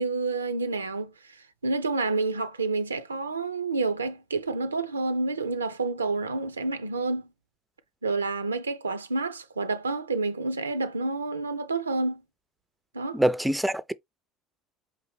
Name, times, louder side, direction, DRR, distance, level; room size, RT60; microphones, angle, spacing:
voice 1, 0.0-7.3 8.0-12.2 12.9-13.2, right 3 dB, 80° right, 0.4 m, -29 dB
voice 2, 13.1-13.9, right 1 dB, 5° right, 0.4 m, -24 dB
5.1 x 2.6 x 3.2 m
figure-of-eight pair, 60°, 0 cm